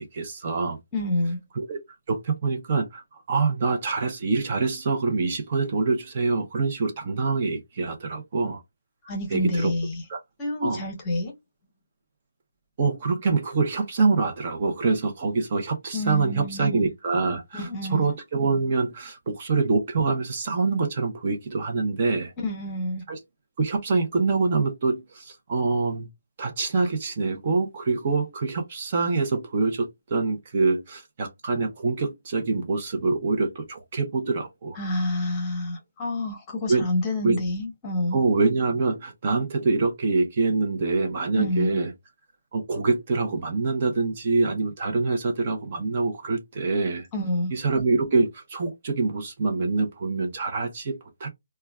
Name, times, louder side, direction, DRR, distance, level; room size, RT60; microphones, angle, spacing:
voice 1, 0.0-0.8 1.5-1.8 2.1-3.0 3.3-8.6 9.3-9.7 10.1-10.2 10.6-10.9 12.8-22.3 23.1-23.2 23.6-26.1 26.4-34.8 36.7-36.8 37.2-37.4 38.1-41.9 42.5-47.1 47.5-51.3, right 4 dB, 35° right, 0.6 m, -25 dB
voice 2, 0.9-1.4 9.0-10.0 10.4-11.3 15.9-16.9 17.5-18.1 22.4-23.0 34.7-38.2 41.3-41.8 47.1-47.5, left 1 dB, 15° left, 0.9 m, -28 dB
4.5 x 2.2 x 2.3 m
hypercardioid pair, 170°, 0 cm